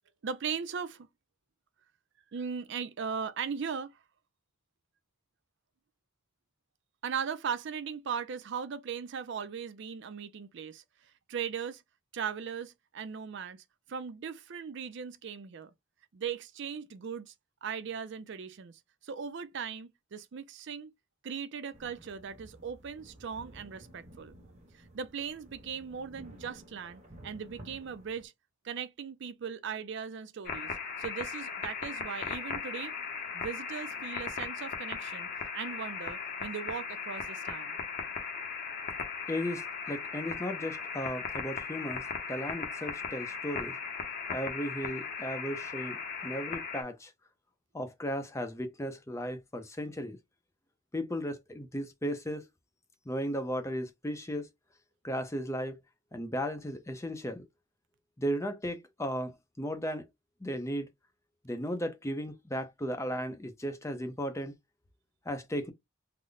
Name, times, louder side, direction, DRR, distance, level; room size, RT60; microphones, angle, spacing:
voice 1, 0.2-1.1 2.3-4.0 7.0-10.8 11.3-11.8 12.1-15.7 16.1-17.3 17.6-20.9 21.2-24.3 24.7-28.3 28.6-32.9 33.3-37.7, right 6 dB, 55° right, 0.4 m, -38 dB
sound 1, 21.7-28.2, right 1 dB, 30° right, 1.2 m, -53 dB
sound 2, 30.5-46.8, left 5 dB, 45° left, 0.8 m, -38 dB
voice 2, 39.3-43.8 44.3-47.1 47.7-50.2 50.9-52.5 53.1-54.5 55.0-55.8 56.1-57.4 58.2-60.1 60.4-60.9 61.4-64.5 65.3-65.7, equal, 15° left, 0.6 m, -35 dB
3.8 x 2.1 x 3.2 m
head